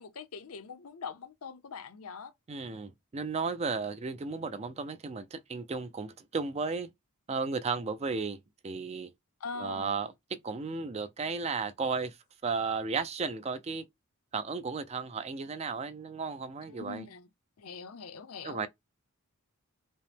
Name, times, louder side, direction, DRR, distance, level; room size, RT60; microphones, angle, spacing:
voice 1, 0.0-2.3 9.4-10.0 16.7-17.3 17.6-18.7, left 5 dB, 75° left, 0.6 m, -43 dB
voice 2, 2.5-6.9 7.3-8.4 8.6-9.1 9.6-10.1 10.4-12.2 12.4-13.8 14.3-17.0 18.4-18.7, right 4 dB, 30° right, 0.3 m, -34 dB
5.3 x 2.0 x 3.4 m
head